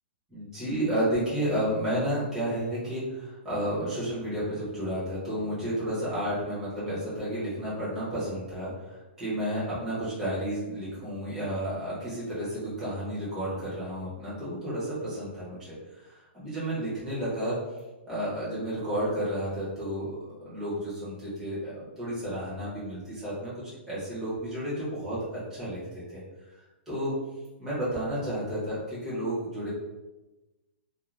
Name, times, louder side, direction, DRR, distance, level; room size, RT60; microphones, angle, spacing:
voice 1, 0.3-17.6 18.1-26.2 26.9-27.1 27.6-29.7, right 1 dB, 5° right, -11 dB, 0.8 m, -32 dB
2.5 x 2.1 x 3.0 m, 1.1 s
hypercardioid pair, 180°, 6 cm